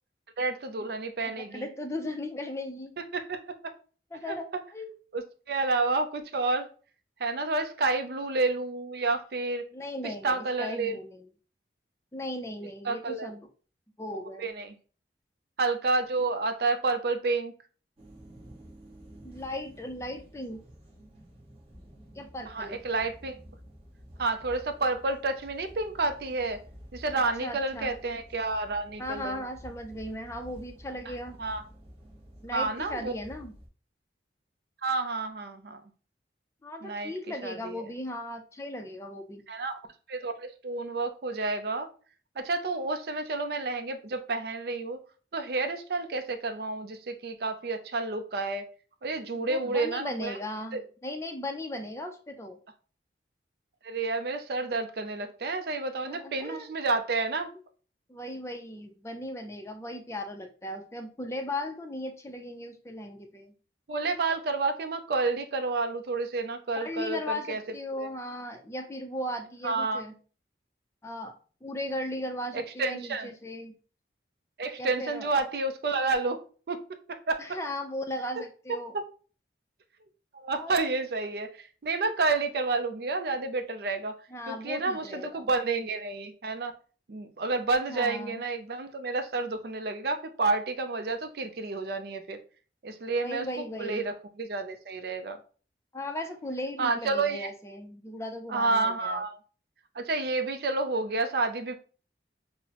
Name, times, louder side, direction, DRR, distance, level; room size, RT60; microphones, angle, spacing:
voice 1, 0.4-1.7 3.1-3.7 4.3-4.4 5.1-6.7 7.2-9.7 10.0-11.0 12.8-13.3 14.1-14.8 15.6-17.5 22.5-23.4 24.2-26.6 26.9-29.4 31.4-31.6 32.5-33.1 34.8-35.8 36.8-37.1 37.4-37.9 39.5-39.8 40.1-41.9 42.4-45.0 45.3-48.7 49.0-50.4 50.7-50.8 53.8-57.5 63.9-67.6 68.0-68.1 69.6-70.1 72.5-73.3 74.6-76.4 76.7-76.8 77.1-77.6 78.4-78.5 78.9-79.0 80.4-84.2 84.5-86.7 87.1-92.4 92.8-93.5 93.8-95.4 96.8-97.5 98.5-99.4 99.9-101.7, right 3 dB, 55° right, 8 dB, 0.4 m, -30 dB
voice 2, 1.2-2.9 4.1-4.5 4.7-4.9 9.7-11.2 12.1-13.5 14.0-14.5 19.2-20.6 22.1-22.8 27.4-27.9 29.0-31.4 32.4-33.5 36.6-39.4 49.3-52.6 56.1-56.7 58.1-63.5 66.8-70.1 71.0-71.3 71.6-73.8 74.8-75.3 77.4-78.9 80.5-80.9 84.3-85.5 87.9-88.4 93.2-94.0 95.9-99.2, left 1 dB, 15° left, 4 dB, 0.4 m, -37 dB
sound 1, 18.0-33.7, equal, 30° right, 0.9 m, -50 dB
5.5 x 2.0 x 2.9 m, 0.39 s
head